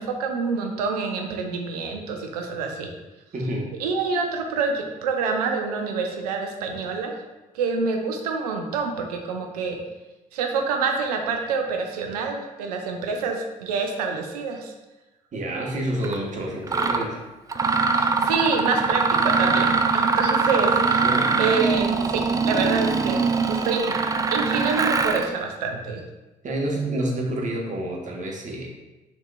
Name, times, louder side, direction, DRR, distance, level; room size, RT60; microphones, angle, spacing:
voice 1, 0.0-2.9 3.8-7.2 7.5-9.8 10.3-14.7 17.9-21.1 21.4-23.2 23.5-23.9 24.3-26.0, right 4 dB, 80° right, 3 dB, 0.5 m, -27 dB
voice 2, 3.3-3.7 15.3-17.3 21.0-21.4 26.4-28.7, right 1 dB, 40° right, -1 dB, 1.0 m, -28 dB
Mechanisms, 16.0-16.2 16.7-17.1 17.5-25.3, right 4 dB, 20° right, 0.3 m, -22 dB
5.8 x 2.8 x 2.2 m, 1.1 s
figure-of-eight pair, 45°, 20 cm